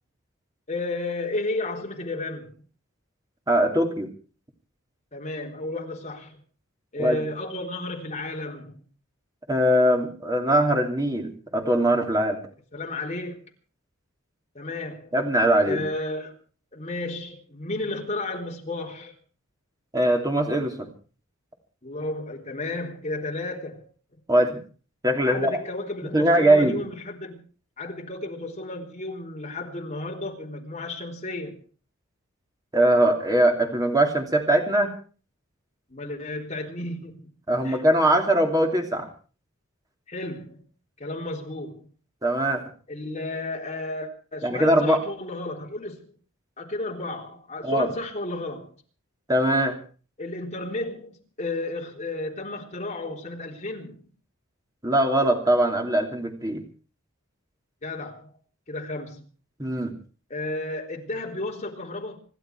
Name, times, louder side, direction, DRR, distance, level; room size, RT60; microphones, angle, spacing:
voice 1, 0.7-2.6 5.1-6.4 6.9-8.8 12.7-13.4 14.5-15.1 15.6-16.3 16.7-19.1 21.8-23.8 25.2-27.4 27.8-31.6 35.9-37.3 37.6-37.8 40.1-40.6 41.0-41.9 42.9-46.1 46.6-48.7 50.2-54.1 57.8-58.3 58.7-59.2 60.3-62.2, left 2 dB, 35° left, 3.7 m, -33 dB
voice 2, 3.5-4.1 7.0-7.2 9.5-12.4 15.1-15.8 19.9-20.9 24.3-24.6 25.0-25.6 26.0-26.8 32.7-34.9 37.5-39.1 42.2-42.6 44.4-45.0 47.6-47.9 49.3-49.8 54.8-56.6 59.6-59.9, right 1 dB, 20° right, 2.9 m, -21 dB
26.5 x 11.5 x 4.7 m
head